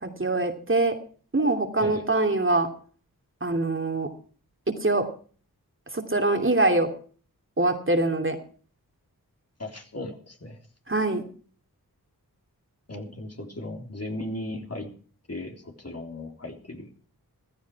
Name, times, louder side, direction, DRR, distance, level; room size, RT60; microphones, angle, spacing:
voice 1, 0.0-1.0 1.3-2.7 3.4-4.1 4.8-5.1 5.9-6.9 7.6-8.4 10.9-11.2, right 2 dB, 35° right, 5 dB, 2.8 m, -23 dB
voice 2, 9.6-10.6 12.9-14.9 15.3-17.1, left 1 dB, 40° left, 4 dB, 3.5 m, -37 dB
15.0 x 13.5 x 4.7 m, 0.42 s
cardioid pair, 55°, 37 cm